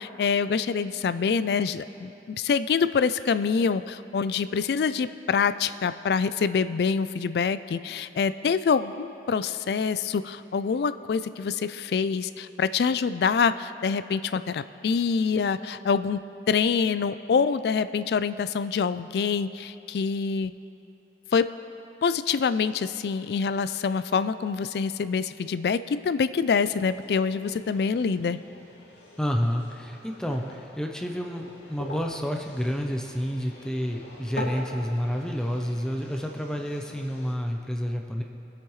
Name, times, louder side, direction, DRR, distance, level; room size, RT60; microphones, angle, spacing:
voice 1, 0.0-16.2 16.5-20.5 21.3-21.5 22.0-28.4, left 5 dB, 65° left, 14 dB, 0.3 m, -26 dB
sound 1, 26.6-37.3, left 1 dB, 80° left, 2.0 m, -43 dB
voice 2, 29.2-38.2, equal, 5° left, 2 dB, 0.5 m, -29 dB
20.5 x 8.3 x 3.1 m, 2.9 s
head